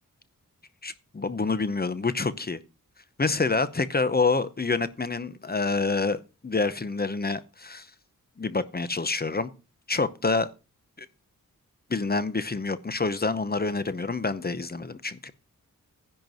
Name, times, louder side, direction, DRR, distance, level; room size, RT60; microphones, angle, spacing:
voice 1, 0.8-2.6 3.2-7.9 8.4-9.5 9.9-10.5 11.0-11.1 11.9-15.3, left 3 dB, 30° left, 0.8 m, -27 dB
10.5 x 4.5 x 7.8 m
wide cardioid pair, 130°, 33 cm